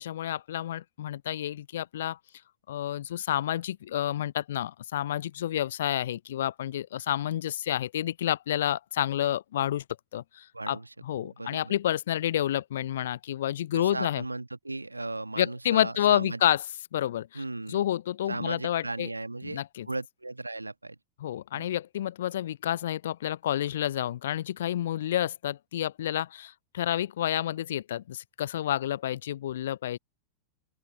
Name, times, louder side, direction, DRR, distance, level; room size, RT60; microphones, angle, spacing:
voice 1, 0.0-2.2 2.7-9.8 10.1-10.8 11.0-14.2 15.4-16.6 16.9-19.1 19.4-19.9 21.2-30.0, left 11 dB, 60° left, 0.3 m, -29 dB
voice 2, 10.5-10.9 11.2-11.7 13.7-16.4 17.3-17.8 18.3-21.0 21.5-21.7, right 2 dB, 85° right, 1.5 m, -36 dB
open air
figure-of-eight pair, 90°, 0 cm